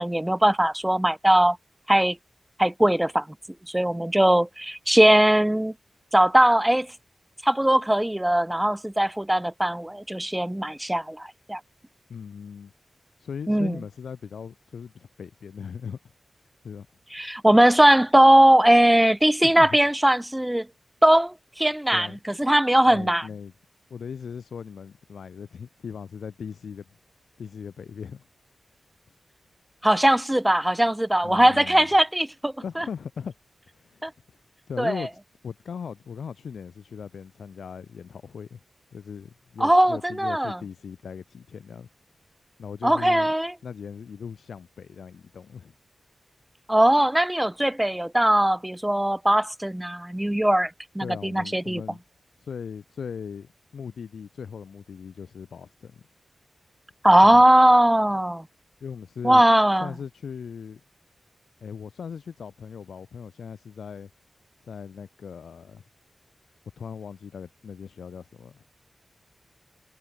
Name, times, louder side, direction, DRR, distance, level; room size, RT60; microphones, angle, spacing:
voice 1, 0.0-1.6 1.9-2.2 2.6-3.3 3.7-5.7 6.1-6.9 7.4-11.6 13.5-13.8 17.1-20.7 21.0-22.1 22.4-23.3 29.8-32.8 34.0-34.1 34.8-35.1 39.6-40.6 42.8-43.5 46.7-51.8 57.0-58.5 59.2-59.9, right 1 dB, 10° right, 1.3 m, -20 dB
voice 2, 12.1-12.7 13.2-16.0 16.6-16.9 19.4-19.8 21.9-22.2 22.9-23.5 23.9-26.8 27.4-28.3 31.2-31.9 32.6-33.3 33.8-34.1 34.7-35.1 35.4-38.6 38.9-41.9 42.6-43.3 43.6-45.7 51.0-52.0 52.4-56.0 57.2-57.4 58.8-59.4 59.8-60.8 61.6-64.1 64.7-65.8 66.8-68.6, left 6 dB, 85° left, 4.1 m, -38 dB
cardioid pair, 40°, 0 cm